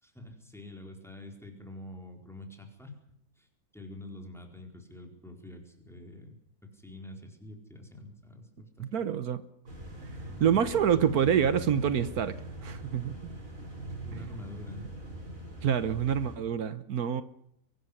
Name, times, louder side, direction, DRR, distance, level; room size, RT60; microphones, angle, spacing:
voice 1, 0.0-3.0 3.4-3.5 3.7-6.4 6.6-9.0 10.4-10.6 14.0-14.9, left 1 dB, ahead, 3 dB, 4.4 m, -46 dB
voice 2, 8.8-9.4 10.4-12.3 12.6-13.2 14.2-14.3 15.6-17.2, right 8 dB, 80° right, 13 dB, 1.6 m, -26 dB
sound 1, 9.7-16.4, right 1 dB, 60° right, 6.7 m, -42 dB
23.5 x 12.5 x 10.0 m, 0.72 s
omnidirectional pair, 1.6 m